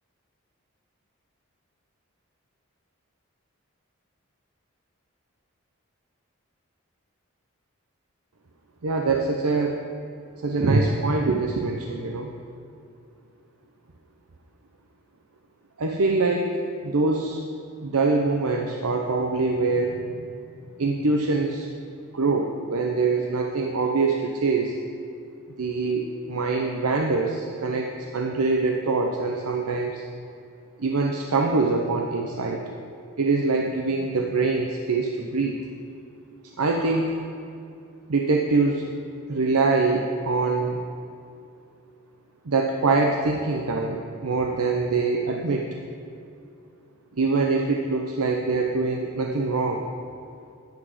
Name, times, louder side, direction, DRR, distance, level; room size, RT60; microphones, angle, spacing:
voice 1, 8.8-9.8 10.4-12.3 15.8-16.6 16.8-17.4 17.8-20.3 20.8-21.7 22.1-24.8 25.6-30.0 30.8-32.6 33.2-35.6 36.4-37.2 38.1-38.9 39.3-40.8 42.4-45.7 47.1-49.8, right 3 dB, 85° right, 2 dB, 0.7 m, -24 dB
10.5 x 6.2 x 7.6 m, 2.5 s
head